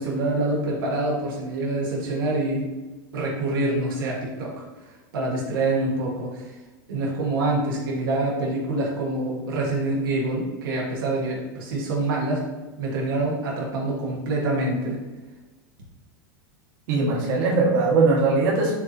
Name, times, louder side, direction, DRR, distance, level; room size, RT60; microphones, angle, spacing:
voice 1, 0.0-2.7 3.1-6.6 6.9-12.5 12.8-15.0, right 2 dB, 85° right, -3 dB, 1.2 m, -26 dB
voice 2, 16.9-18.7, right 3 dB, 60° right, -3 dB, 1.3 m, -20 dB
6.4 x 2.9 x 2.7 m, 1.2 s
supercardioid pair, 145°, 11 cm